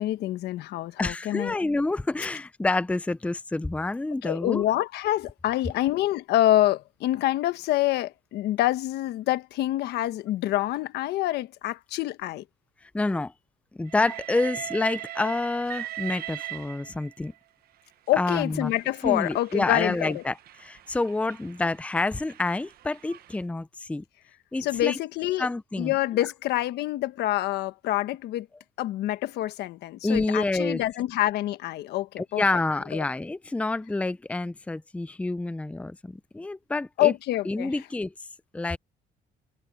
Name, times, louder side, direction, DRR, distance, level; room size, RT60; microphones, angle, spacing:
voice 1, 0.0-1.6 4.2-12.4 18.1-20.2 24.6-25.5 25.8-28.5 28.8-32.4 32.9-33.0 37.0-37.7, left 14 dB, 75° left, 1.3 m, -26 dB
voice 2, 1.0-4.6 12.9-13.3 13.7-17.3 18.2-18.7 19.0-24.0 24.5-25.0 25.4-25.9 30.0-30.8 32.2-37.1 37.5-38.1 38.5-38.8, left 2 dB, 5° left, 0.6 m, -28 dB
Train, 13.9-17.3 18.1-23.4, right 14 dB, 65° right, 1.1 m, -40 dB
cardioid pair, 110°, 17 cm